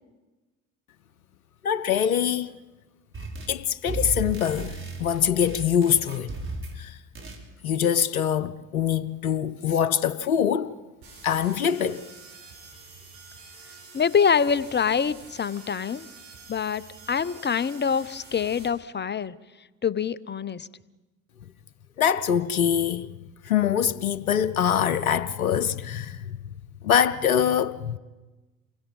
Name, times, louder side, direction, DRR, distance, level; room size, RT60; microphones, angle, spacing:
voice 1, 1.6-2.6 3.5-6.3 6.8-7.0 7.6-10.7 11.2-12.0 22.0-23.1 23.4-26.2 26.8-28.0, left 8 dB, 90° left, 0.7 m, -24 dB
sound 1, 3.1-3.6 3.8-6.8 7.1-7.4, right 2 dB, 30° right, 5.4 m, -35 dB
sound 2, 11.0-18.7, right 4 dB, 75° right, 6.8 m, -47 dB
voice 2, 13.9-16.1 16.5-19.3 19.8-20.7, left 6 dB, 25° left, 1.0 m, -25 dB
29.0 x 22.0 x 5.6 m
figure-of-eight pair, 50°, 41 cm